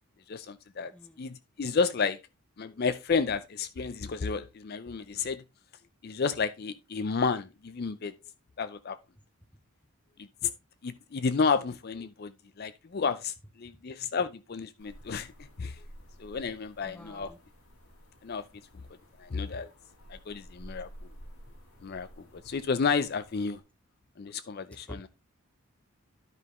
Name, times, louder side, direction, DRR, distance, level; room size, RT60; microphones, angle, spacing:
voice 1, 0.3-0.9 1.2-2.2 2.6-5.4 6.0-8.1 8.6-9.0 10.4-10.5 10.8-15.8 16.2-17.3 18.2-18.4 19.2-19.7 20.1-20.9 21.8-23.6 24.2-25.1, left 5 dB, 45° left, 0.4 m, -31 dB
voice 2, 0.9-1.2 16.8-17.4 24.9-25.1, left 1 dB, 5° left, 0.8 m, -47 dB
sound 1, 14.8-23.6, equal, 80° left, 2.5 m, -52 dB
12.5 x 5.4 x 3.1 m
head